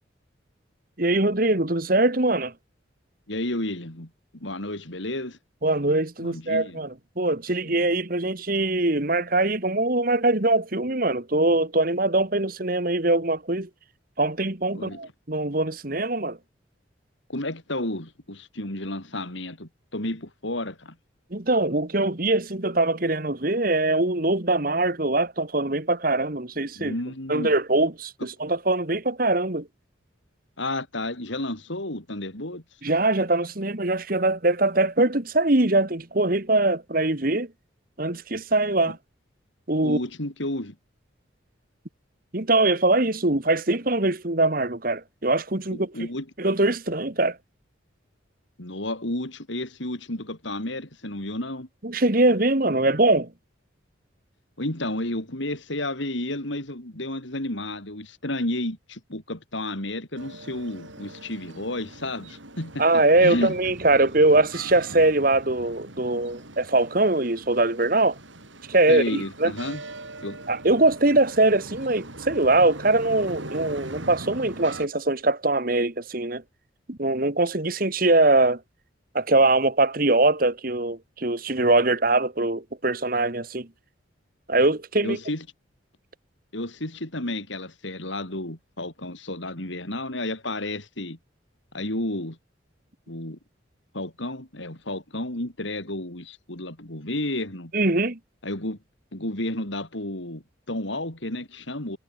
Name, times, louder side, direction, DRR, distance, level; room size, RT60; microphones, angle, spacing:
voice 1, 1.0-2.5 5.6-13.7 14.2-16.4 21.3-26.9 27.3-29.7 32.8-37.5 38.0-39.0 39.7-40.0 42.3-45.9 46.4-47.4 51.8-53.3 62.8-68.2 68.7-69.5 70.5-76.4 76.9-78.6 79.1-83.7 84.5-85.2 97.7-98.2, right 2 dB, 45° right, 1.8 m, -22 dB
voice 2, 3.3-5.4 6.2-6.8 7.7-7.8 14.7-15.0 17.3-21.0 26.7-27.5 30.6-32.6 38.9-39.0 39.8-40.8 45.9-46.3 48.6-51.7 54.6-63.6 68.9-69.8 70.2-70.4 85.0-85.5 86.5-91.2 91.7-92.4 93.1-93.4 93.9-97.7 98.4-98.8 99.1-102.0, left 1 dB, 70° left, 4.4 m, -31 dB
sound 1, 60.1-74.9, right 2 dB, 75° right, 7.2 m, -41 dB
head